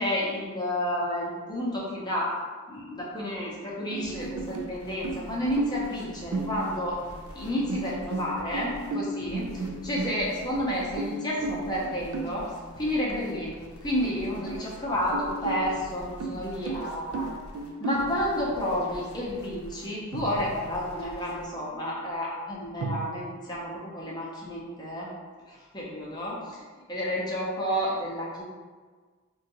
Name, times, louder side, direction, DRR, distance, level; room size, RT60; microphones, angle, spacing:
voice 1, 0.0-2.3 2.7-7.0 7.3-12.5 12.8-13.6 13.8-17.3 17.8-25.1 25.5-26.6 26.9-28.4, equal, 20° left, -5 dB, 0.6 m, -31 dB
sound 1, 3.6-4.8 5.0-6.0 6.3-7.0 7.7-10.5 11.0-12.4 13.1-13.2 13.5-13.6 14.0-14.7 15.1-18.2 20.1-20.9 22.8-23.1, right 2 dB, 65° right, 0.3 m, -34 dB
sound 2, 4.0-21.5, left 1 dB, 85° left, 0.5 m, -46 dB
3.6 x 2.2 x 2.8 m, 1.5 s
head